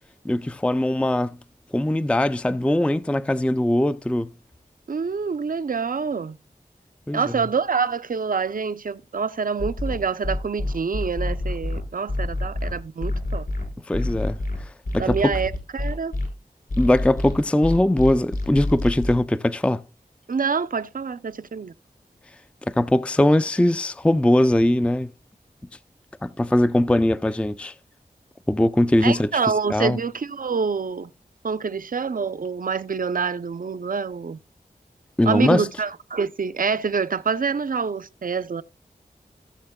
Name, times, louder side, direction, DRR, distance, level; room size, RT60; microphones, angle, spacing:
voice 1, 0.2-1.4 1.7-4.3 7.1-7.2 13.9-15.3 16.8-19.8 22.7-25.1 26.2-27.7 28.5-29.3 29.7-30.0 35.2-35.7, left 1 dB, 5° left, 0.4 m, -21 dB
voice 2, 4.9-6.4 7.1-13.5 15.0-16.1 20.3-21.7 29.0-31.1 31.4-34.4 35.3-38.6, right 5 dB, 60° right, 0.6 m, -26 dB
sound 1, 9.6-16.3 16.7-19.1, left 2 dB, 65° left, 4.9 m, -27 dB
17.0 x 7.1 x 2.3 m
wide cardioid pair, 45°, 16 cm